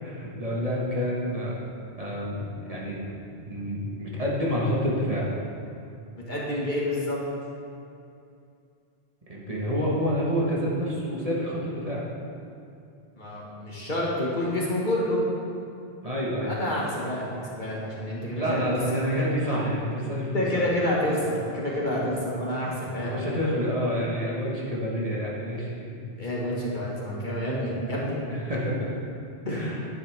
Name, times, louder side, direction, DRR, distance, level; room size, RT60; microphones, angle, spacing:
voice 1, 0.0-1.6 2.0-3.1 3.4-5.3 9.3-12.0 16.0-16.6 18.3-20.6 22.6-26.0 28.2-28.9 29.5-29.9, equal, 35° right, -6 dB, 1.6 m, -28 dB
voice 2, 6.2-7.2 13.2-15.2 16.4-18.6 20.3-23.2 26.2-28.2 29.4-29.7, left 1 dB, 45° left, -5 dB, 2.0 m, -28 dB
11.0 x 9.5 x 3.6 m, 2.6 s
omnidirectional pair, 1.1 m